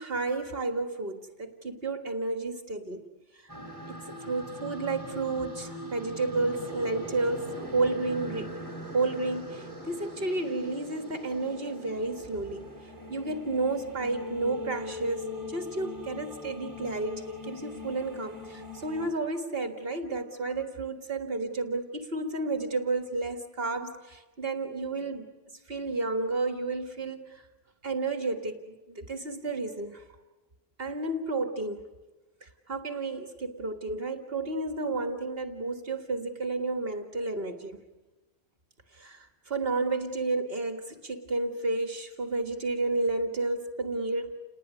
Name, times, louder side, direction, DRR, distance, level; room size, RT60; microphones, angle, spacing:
voice 1, 0.0-3.1 3.3-3.5 3.9-8.5 8.9-12.7 13.1-25.3 25.7-27.4 27.8-30.0 30.8-31.8 32.4-37.8 38.9-44.3, right 3 dB, 65° right, 6 dB, 2.0 m, -31 dB
sound 1, 3.5-19.1, left 1 dB, 20° right, 5.0 m, -41 dB
29.5 x 20.5 x 9.5 m, 1.1 s
omnidirectional pair, 1.1 m